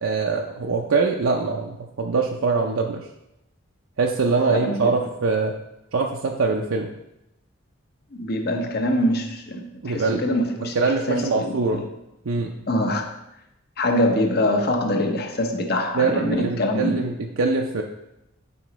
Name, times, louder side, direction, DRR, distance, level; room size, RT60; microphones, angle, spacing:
voice 1, 0.0-3.1 4.0-5.5 5.9-6.9 9.8-10.4 10.8-11.9 12.3-12.6 15.9-17.8, right 4 dB, 80° right, 1 dB, 0.6 m, -23 dB
voice 2, 4.5-5.0 8.1-11.8 12.7-13.1 13.8-17.0, left 1 dB, 50° left, 4 dB, 0.9 m, -24 dB
11.0 x 4.9 x 3.1 m, 0.88 s
head